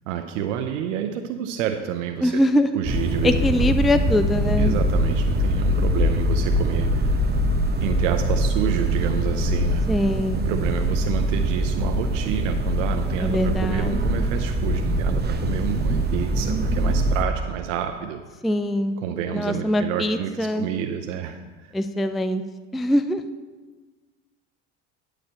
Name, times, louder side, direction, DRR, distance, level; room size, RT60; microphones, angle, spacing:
voice 1, 0.1-2.4 2.7-3.9 4.6-7.3 7.8-9.9 10.4-18.2 19.0-21.7, right 9 dB, 85° right, 5 dB, 0.7 m, -29 dB
voice 2, 2.2-2.7 3.2-4.7 9.9-10.4 13.2-14.2 18.4-19.0 19.3-20.7 21.7-22.4 22.7-23.2, left 1 dB, ahead, 10 dB, 0.3 m, -23 dB
sound 1, 2.8-17.2, equal, 25° right, 1.0 m, -23 dB
9.6 x 5.0 x 7.5 m, 1.3 s
supercardioid pair, 90°, 37 cm